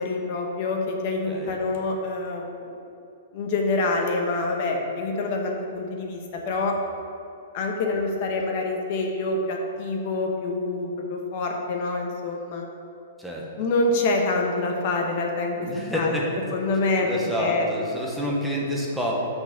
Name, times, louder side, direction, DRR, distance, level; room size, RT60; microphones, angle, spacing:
voice 1, 0.0-2.7 3.3-6.7 7.5-12.7 13.6-15.7 15.9-16.2 16.5-17.7, left 2 dB, 40° left, 1 dB, 1.0 m, -26 dB
voice 2, 1.3-1.6 13.2-13.4 15.6-16.3 17.0-19.1, equal, ahead, -4 dB, 1.0 m, -28 dB
6.1 x 5.5 x 6.8 m, 2.8 s
hypercardioid pair, 170°, 0 cm